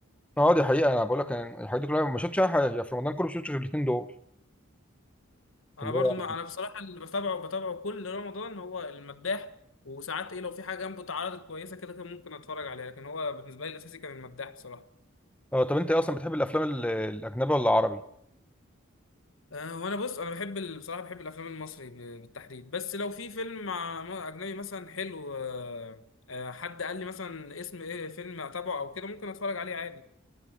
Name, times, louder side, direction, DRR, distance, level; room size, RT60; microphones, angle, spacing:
voice 1, 0.4-4.1 5.8-6.1 15.5-18.0, left 1 dB, 5° left, 0.9 m, -26 dB
voice 2, 5.8-9.5 9.8-14.8 19.5-30.0, left 4 dB, 75° left, 1.2 m, -36 dB
24.5 x 19.0 x 6.4 m
head